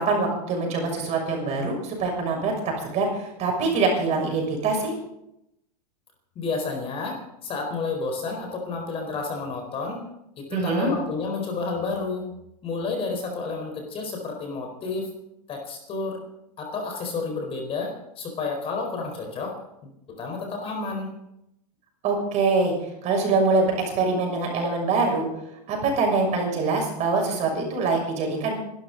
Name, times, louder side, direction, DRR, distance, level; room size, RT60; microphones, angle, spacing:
voice 1, 0.0-4.9 10.5-10.9 22.0-22.7 23.0-25.3 25.7-28.5, right 3 dB, 35° right, 1 dB, 6.6 m, -24 dB
voice 2, 6.4-10.0 10.4-12.3 12.6-15.1 15.5-16.2 16.6-19.6 19.8-21.1, left 4 dB, 30° left, 3 dB, 4.2 m, -30 dB
26.5 x 12.5 x 4.0 m, 0.82 s
hypercardioid pair, 130°, 20 cm